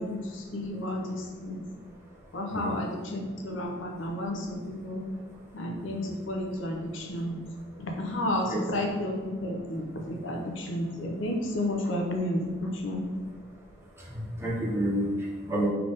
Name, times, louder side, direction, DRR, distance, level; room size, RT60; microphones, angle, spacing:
voice 1, 0.0-1.7 2.3-5.1 5.5-7.4 7.8-13.1, left 1 dB, 70° left, 1 dB, 0.6 m, -32 dB
voice 2, 14.0-15.7, right 1 dB, 15° right, -5 dB, 0.8 m, -29 dB
3.4 x 3.3 x 3.9 m, 1.3 s
head